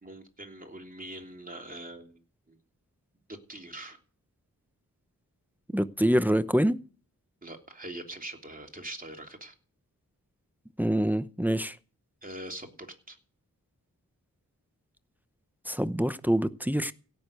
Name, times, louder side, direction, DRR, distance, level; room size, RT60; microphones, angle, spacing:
voice 1, 0.0-2.2 2.5-2.6 3.3-4.0 7.4-9.5 12.2-13.2, right 1 dB, 25° right, 3.2 m, -43 dB
voice 2, 5.7-6.8 10.8-11.8 15.7-16.9, equal, 5° right, 0.8 m, -25 dB
16.5 x 6.8 x 8.1 m
cardioid pair, 50°, 35 cm